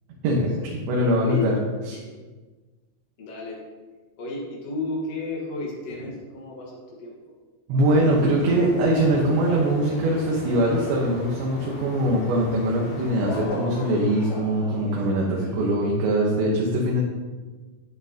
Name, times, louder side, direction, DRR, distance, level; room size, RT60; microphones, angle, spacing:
voice 1, 0.2-1.6 1.9-2.0 7.7-17.0, right 1 dB, 75° right, -3 dB, 3.4 m, -22 dB
voice 2, 3.2-3.6 4.2-7.1, left 2 dB, 80° left, -3 dB, 1.4 m, -32 dB
sound 1, 7.9-13.5, left 2 dB, 60° left, 3.9 m, -39 dB
sound 2, 10.3-11.6 13.2-15.7, left 1 dB, 45° left, 2.4 m, -37 dB
12.5 x 9.1 x 2.9 m, 1.3 s
omnidirectional pair, 5.5 m